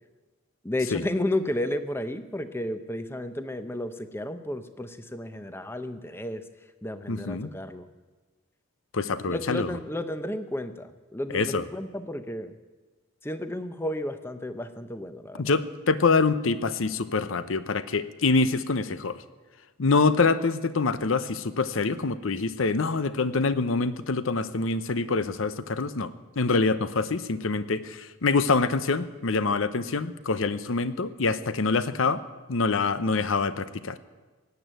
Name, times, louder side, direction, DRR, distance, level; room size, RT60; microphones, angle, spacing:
voice 1, 0.6-6.4 6.8-7.9 9.3-12.5 13.2-15.5, left 1 dB, 10° left, 10 dB, 0.7 m, -32 dB
voice 2, 7.1-7.5 8.9-9.7 11.3-11.7 15.4-19.2 19.8-26.1 26.4-32.2 32.5-34.0, left 4 dB, 75° left, 14 dB, 0.8 m, -25 dB
16.5 x 9.1 x 9.2 m, 1.3 s
head